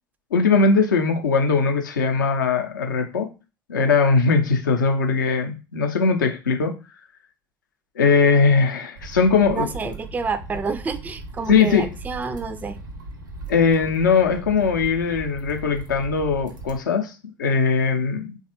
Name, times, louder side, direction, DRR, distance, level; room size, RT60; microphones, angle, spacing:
voice 1, 0.3-3.3 3.7-6.7 8.0-9.7 11.5-11.9 13.5-17.1 17.4-18.4, left 4 dB, 75° left, 0.6 m, -20 dB
sound 1, 8.9-16.8, right 3 dB, 80° right, 0.6 m, -38 dB
voice 2, 9.5-12.8, right 4 dB, 15° right, 0.3 m, -29 dB
3.2 x 2.3 x 2.9 m
figure-of-eight pair, 60°, 10 cm